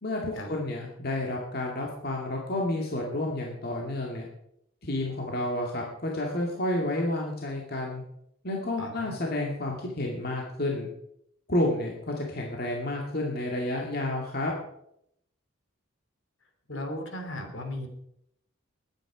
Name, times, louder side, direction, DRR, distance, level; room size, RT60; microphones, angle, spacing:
voice 1, 0.0-4.3 4.8-8.0 8.4-10.9 11.5-14.5, left 1 dB, 45° left, -1 dB, 2.2 m, -30 dB
voice 2, 8.8-9.1 16.7-17.9, left 1 dB, 65° left, 5 dB, 2.9 m, -36 dB
21.0 x 9.2 x 5.0 m, 0.78 s
head